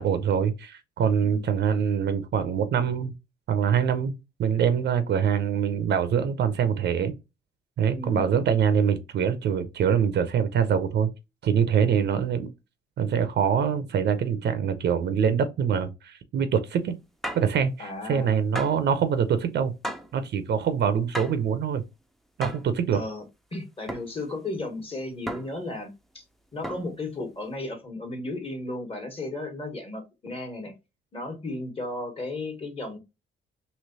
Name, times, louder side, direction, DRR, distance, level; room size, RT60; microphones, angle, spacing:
voice 1, 0.0-3.2 3.5-7.1 7.8-11.1 11.4-12.5 13.0-17.0 17.4-19.7 20.1-21.8 22.4-23.0, right 7 dB, 60° right, 0.5 m, -24 dB
voice 2, 7.9-8.2 12.0-12.3 17.8-18.3 20.7-20.8 22.9-23.2 23.5-26.2 26.5-30.7 31.1-33.0, left 2 dB, 30° left, 1.4 m, -35 dB
sound 1, 17.2-17.5 18.5-18.9 19.8-20.2 21.1-21.5 22.4-22.7 23.9-24.1 25.3-25.7 26.6-27.0, equal, ahead, 0.5 m, -35 dB
3.1 x 2.8 x 2.7 m
cardioid pair, 90°, 20 cm